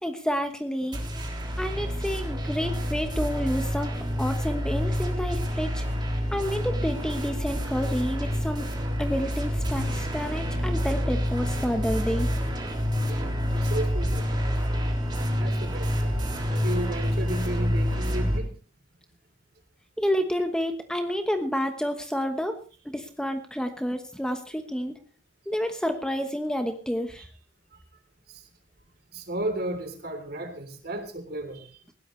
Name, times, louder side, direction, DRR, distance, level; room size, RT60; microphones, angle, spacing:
voice 1, 0.0-1.0 1.6-3.9 4.2-5.8 6.3-8.7 9.0-12.3 20.0-22.6 22.8-25.0 25.5-27.3, equal, 5° left, 6 dB, 1.1 m, -29 dB
sound 1, 0.9-18.4, equal, 25° right, 3.4 m, -28 dB
voice 2, 13.5-14.2 15.4-16.2 16.5-18.5 29.1-31.7, right 1 dB, 55° right, 7 dB, 3.5 m, -34 dB
20.0 x 16.5 x 3.2 m, 0.39 s
head